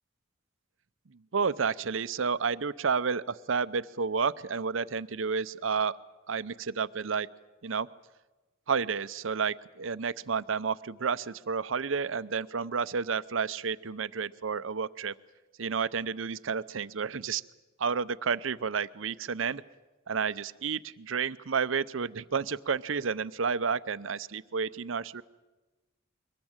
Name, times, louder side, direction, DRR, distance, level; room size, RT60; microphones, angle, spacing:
voice 1, 1.3-5.9 6.3-7.3 7.6-7.9 8.7-15.1 15.6-17.4 17.8-19.6 20.1-20.8 21.1-25.2, right 5 dB, 80° right, 17 dB, 0.7 m, -31 dB
23.0 x 20.0 x 8.9 m, 1.2 s
head